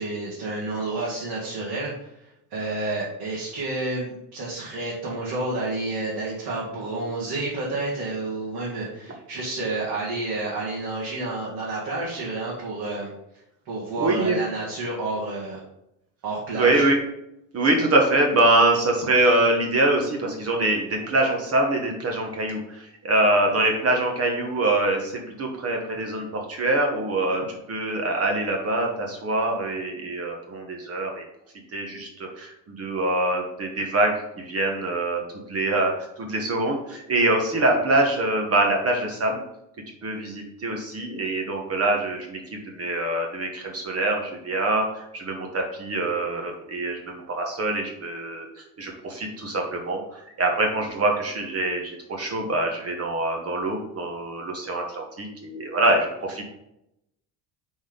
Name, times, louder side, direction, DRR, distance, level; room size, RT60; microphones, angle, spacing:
voice 1, 0.0-2.1 2.5-13.1 13.7-15.6 16.2-16.9, right 2 dB, 60° right, -6 dB, 2.1 m, -30 dB
voice 2, 14.0-14.4 16.5-17.0 17.5-31.2 31.7-35.2 35.5-39.4 40.0-48.5 48.8-56.4, right 2 dB, 35° right, 1 dB, 1.2 m, -24 dB
5.8 x 4.3 x 5.2 m, 0.84 s
cardioid pair, 140°, 43 cm